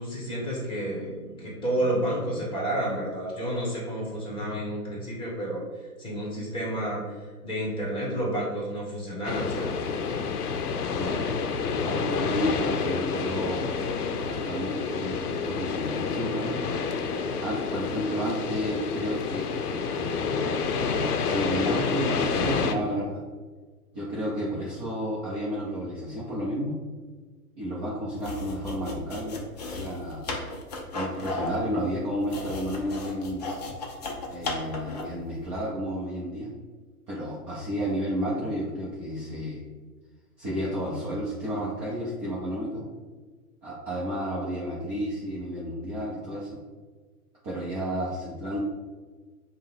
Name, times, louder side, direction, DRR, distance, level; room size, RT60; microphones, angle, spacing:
voice 1, 0.0-5.6 6.0-7.2 7.4-9.9, right 1 dB, 10° left, -4 dB, 1.2 m, -30 dB
sound 1, 9.2-22.7, left 5 dB, 75° left, 0.6 m, -29 dB
voice 2, 11.8-13.8 14.3-16.5 17.4-23.2 23.9-26.7 27.6-30.2 30.9-33.4 34.3-36.5 37.1-39.6 40.4-42.9 43.6-46.6 47.4-48.6, equal, 20° right, -7 dB, 0.6 m, -32 dB
sound 2, 28.2-35.2, left 2 dB, 30° left, 0.4 m, -35 dB
5.4 x 2.2 x 3.4 m, 1.4 s
figure-of-eight pair, 120°, 46 cm